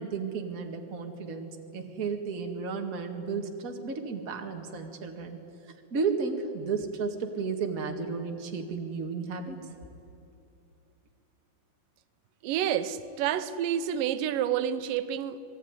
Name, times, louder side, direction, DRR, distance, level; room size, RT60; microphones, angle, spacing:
voice 1, 0.0-5.4 5.9-9.6, right 5 dB, 30° right, 3 dB, 2.0 m, -33 dB
voice 2, 12.4-15.4, right 10 dB, 90° right, 12 dB, 2.6 m, -29 dB
26.5 x 20.5 x 9.8 m, 2.7 s
omnidirectional pair, 3.8 m